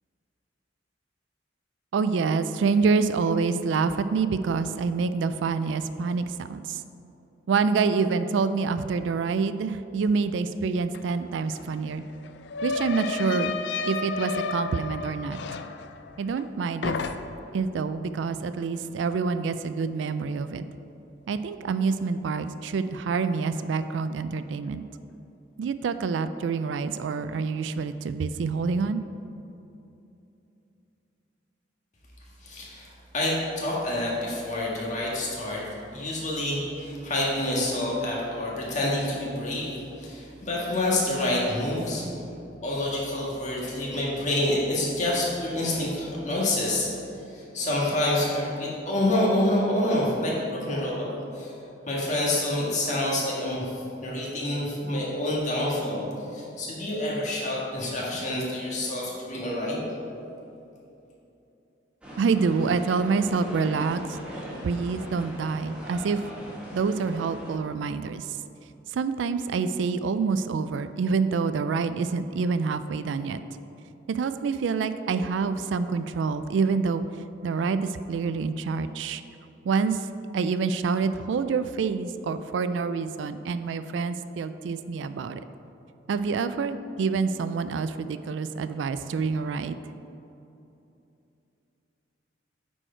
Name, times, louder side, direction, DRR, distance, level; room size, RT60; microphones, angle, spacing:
voice 1, 1.9-6.8 7.5-12.0 12.6-13.6 13.9-15.4 16.2-17.0 17.5-20.6 21.3-24.8 25.6-29.0 62.2-64.0 64.6-66.3 66.7-68.3 68.9-73.4 74.1-77.0 77.4-79.2 79.7-80.1 80.3-85.4 86.1-89.7, right 5 dB, 80° right, 12 dB, 0.3 m, -27 dB
sound 1, 10.9-11.0 11.3-16.5 16.8-17.6, left 4 dB, 65° left, 0.3 m, -32 dB
voice 2, 32.4-32.9 33.1-35.6 35.9-42.1 42.6-46.9 47.3-51.5 51.9-53.7 54.0-56.1 56.3-59.8, left 1 dB, 40° left, -4 dB, 1.6 m, -27 dB
sound 2, 62.0-67.5, equal, 5° right, 1.3 m, -40 dB
9.0 x 4.5 x 4.4 m, 2.8 s
head